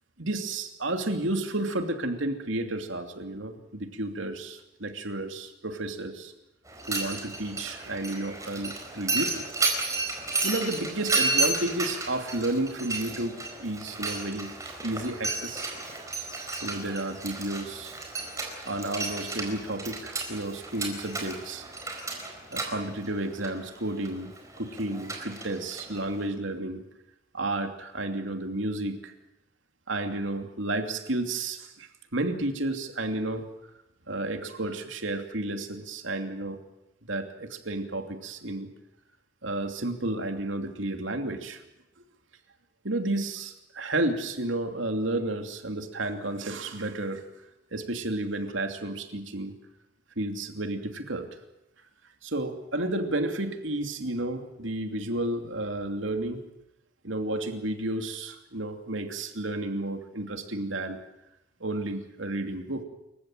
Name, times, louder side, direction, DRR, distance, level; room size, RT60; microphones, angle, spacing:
voice 1, 0.2-6.3 6.9-9.4 10.4-15.7 16.6-18.0 18.6-21.6 22.5-24.3 24.6-26.8 27.3-29.1 29.9-33.4 34.1-36.6 37.0-38.7 39.4-41.6 42.8-47.2 47.7-49.5 50.2-51.3 52.2-56.4 57.0-61.0 61.6-62.8, right 2 dB, 70° right, 6 dB, 2.8 m, -32 dB
Mechanisms, 6.7-26.3, right 3 dB, 15° right, 4.3 m, -33 dB
28.0 x 15.0 x 9.2 m, 0.90 s
head